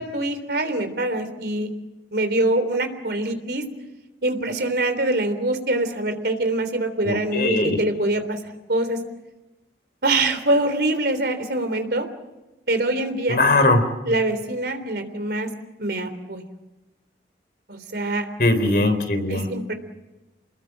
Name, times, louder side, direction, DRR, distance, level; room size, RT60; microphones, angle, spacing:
voice 1, 0.0-1.7 2.1-3.6 4.2-8.4 8.7-9.0 10.0-12.1 12.7-13.4 14.0-15.5 15.8-16.4 17.7-18.3 19.3-19.7, right 2 dB, 65° right, 9 dB, 3.4 m, -24 dB
voice 2, 7.0-7.8 13.3-13.8 18.4-19.4, left 2 dB, 55° left, 7 dB, 3.9 m, -20 dB
29.5 x 21.0 x 7.5 m, 1.1 s
head